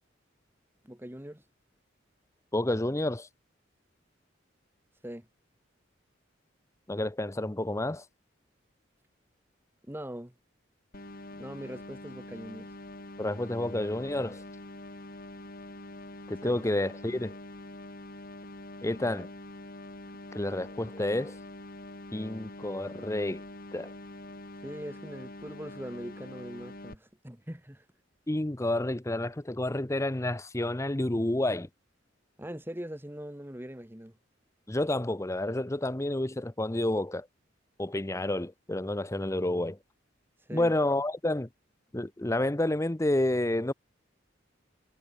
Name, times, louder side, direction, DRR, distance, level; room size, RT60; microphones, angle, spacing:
voice 1, 0.8-1.4 5.0-5.3 9.9-10.3 11.3-12.7 16.4-16.5 24.6-27.9 32.4-34.1 40.4-40.7, equal, 10° right, 2.1 m, -41 dB
voice 2, 2.5-3.3 6.9-8.0 13.2-14.4 16.3-17.3 18.8-19.3 20.3-21.4 22.1-23.4 23.7-23.9 28.3-31.7 34.7-37.3 37.8-39.8 40.5-41.5 41.9-43.7, left 1 dB, 15° left, 0.7 m, -29 dB
sound 1, 10.9-26.9, left 1 dB, 50° left, 3.6 m, -45 dB
head